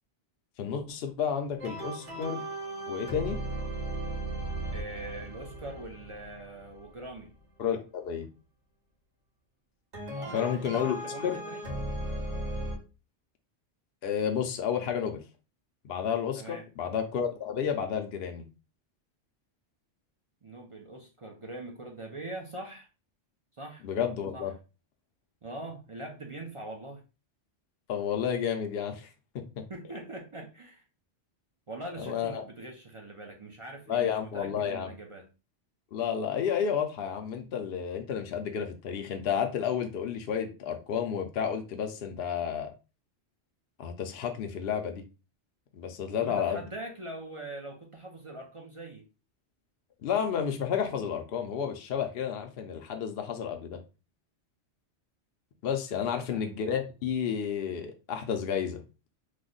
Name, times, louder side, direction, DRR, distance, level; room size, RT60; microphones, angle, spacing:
voice 1, 0.6-2.4 2.9-3.4 7.6-8.3 10.3-11.0 11.2-11.4 14.0-15.2 15.8-18.5 23.8-24.5 27.9-29.1 29.6-29.7 32.0-32.4 33.9-34.9 35.9-42.7 43.8-45.0 45.7-46.6 50.0-53.8 55.6-58.8, left 8 dB, 65° left, 4 dB, 0.7 m, -31 dB
sound 1, 1.6-7.3 9.9-12.8, right 1 dB, 85° right, 1.5 m, -37 dB
voice 2, 4.7-7.3 10.2-11.6 16.4-16.6 20.4-22.9 23.6-23.9 24.3-24.5 25.4-27.0 29.7-30.8 31.7-35.2 46.1-49.0 56.0-56.4, right 2 dB, 40° right, 1 dB, 0.4 m, -42 dB
3.1 x 2.1 x 3.7 m, 0.31 s
omnidirectional pair, 1.2 m